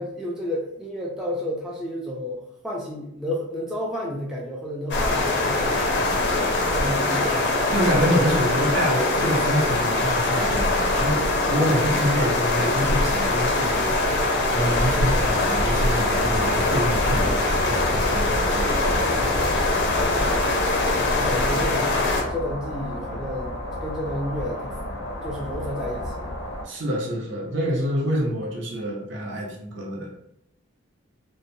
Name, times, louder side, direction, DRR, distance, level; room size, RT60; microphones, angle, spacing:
voice 1, 0.0-5.9 6.3-7.4 20.2-20.7 21.1-22.0 22.3-24.8 25.2-26.3, left 1 dB, 5° right, -4 dB, 0.3 m, -31 dB
sound 1, 4.9-22.2, left 2 dB, 55° left, 0.5 m, -22 dB
voice 2, 7.7-19.4 26.6-30.2, equal, 60° right, -2 dB, 0.7 m, -27 dB
sound 2, 15.9-26.7, left 1 dB, 90° left, 0.7 m, -32 dB
2.7 x 2.1 x 2.6 m, 0.77 s
head